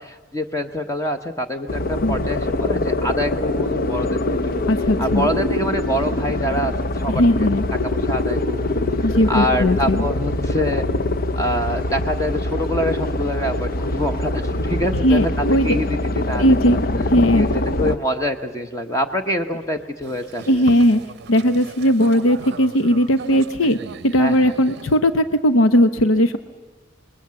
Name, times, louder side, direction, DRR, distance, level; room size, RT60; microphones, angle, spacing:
voice 1, 0.0-4.1 5.0-6.7 7.0-7.5 7.8-8.7 9.3-10.9 11.4-16.8 17.1-20.6 24.2-24.5, equal, 15° left, 7 dB, 1.0 m, -25 dB
sound 1, 1.7-18.0, left 2 dB, 45° left, 0.7 m, -23 dB
voice 2, 4.7-5.3 7.1-7.6 9.0-10.0 14.9-15.7 16.4-16.8 17.1-17.5 20.5-21.0 21.3-23.8 24.0-26.4, equal, 80° left, 11 dB, 0.8 m, -17 dB
Boat Water vehicle, 20.0-25.0, right 4 dB, 55° right, 0.6 m, -38 dB
26.0 x 21.0 x 7.6 m, 1.3 s
head